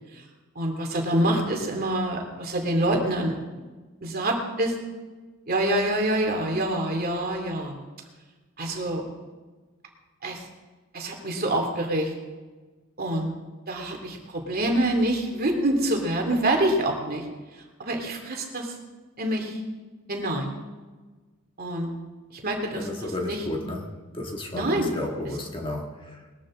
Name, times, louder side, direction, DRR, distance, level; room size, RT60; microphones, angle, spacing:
voice 1, 0.6-3.3 4.0-4.7 5.5-7.8 8.6-9.0 10.2-10.4 10.9-12.1 13.0-13.3 13.7-17.2 17.8-18.7 19.2-19.6 20.1-20.5 21.6-21.9 22.3-22.9 23.2-23.4 24.5-24.9, right 1 dB, 45° right, 2 dB, 2.5 m, -26 dB
voice 2, 22.7-26.3, left 1 dB, 25° left, 0 dB, 2.0 m, -33 dB
20.5 x 14.0 x 3.7 m, 1.3 s
head